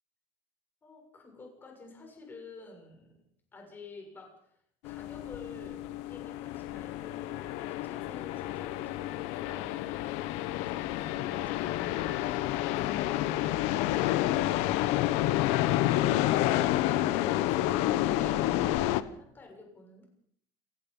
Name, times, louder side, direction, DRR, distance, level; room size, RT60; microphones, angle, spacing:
voice 1, 0.8-3.2 3.5-4.5 4.8-9.8 10.4-14.6 16.2-20.0, left 3 dB, 20° left, 2 dB, 6.8 m, -50 dB
sound 1, 4.8-19.0, left 14 dB, 70° left, 1.1 m, -29 dB
28.5 x 17.0 x 5.6 m, 0.65 s
cardioid pair, 170°, 11 cm